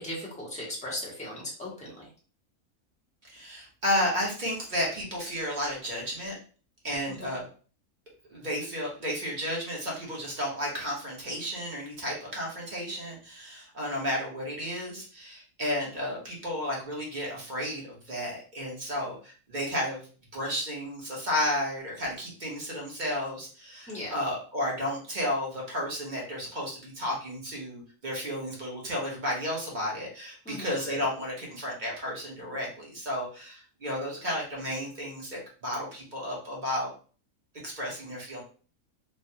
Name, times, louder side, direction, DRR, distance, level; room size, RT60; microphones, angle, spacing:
voice 1, 0.0-1.9 7.2-7.3 23.9-24.2 30.4-30.7, left 1 dB, 5° left, -4 dB, 0.8 m, -37 dB
voice 2, 3.2-6.4 6.8-7.4 8.3-20.1 20.3-36.9 37.6-38.4, left 1 dB, 35° right, -3 dB, 1.0 m, -32 dB
3.2 x 2.2 x 2.7 m, 0.40 s
omnidirectional pair, 1.6 m